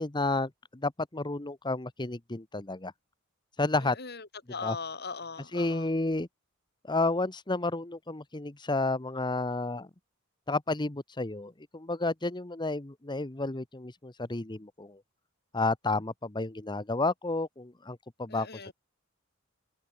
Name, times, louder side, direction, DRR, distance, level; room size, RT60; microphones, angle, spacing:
voice 1, 0.0-2.9 3.6-4.0 4.6-4.8 5.5-6.3 6.8-9.9 10.5-15.0 15.5-18.6, left 2 dB, 20° left, 1.1 m, -31 dB
voice 2, 3.8-5.9 18.3-18.7, left 4 dB, 55° left, 5.9 m, -40 dB
head